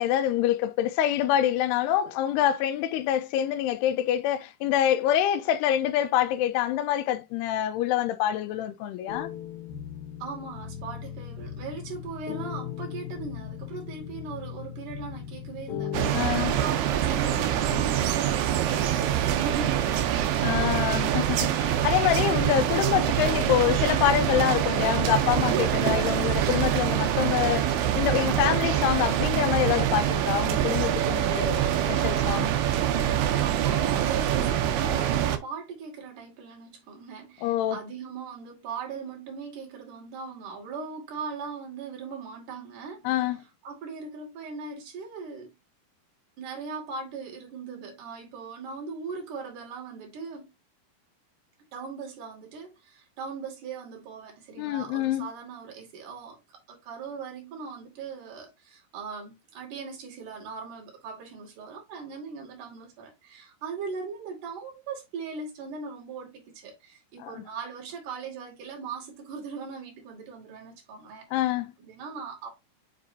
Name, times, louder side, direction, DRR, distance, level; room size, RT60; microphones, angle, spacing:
voice 1, 0.0-9.3 16.1-16.5 20.4-31.6 31.9-32.5 37.4-37.8 43.1-43.4 54.6-55.3 67.2-67.4 71.3-71.7, left 11 dB, 85° left, 2.6 m, -26 dB
sound 1, 9.1-16.1, left 9 dB, 70° left, 2.5 m, -38 dB
voice 2, 10.2-20.2 32.4-43.3 43.6-45.5 46.4-50.5 51.7-71.3 71.8-72.5, right 5 dB, 55° right, 3.5 m, -39 dB
sound 2, 15.9-35.4, right 10 dB, 80° right, 2.7 m, -25 dB
7.5 x 4.8 x 2.7 m
omnidirectional pair, 4.6 m